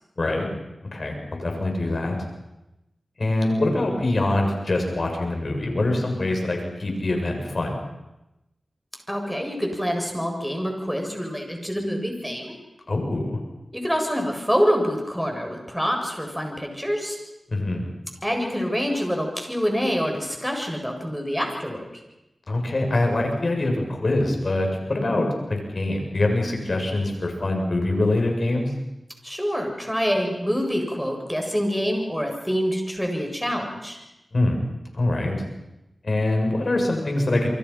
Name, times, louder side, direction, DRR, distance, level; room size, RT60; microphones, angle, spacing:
voice 1, 0.9-2.2 3.2-7.8 12.9-13.4 17.5-17.9 22.5-28.7 34.3-34.6 34.9-35.4 36.0-37.5, left 2 dB, 60° left, 2 dB, 7.8 m, -24 dB
voice 2, 9.1-12.6 13.7-17.2 18.2-22.0 29.2-34.0, equal, ahead, 3 dB, 7.9 m, -26 dB
28.5 x 24.0 x 6.0 m, 0.94 s
cardioid pair, 40°, 0 cm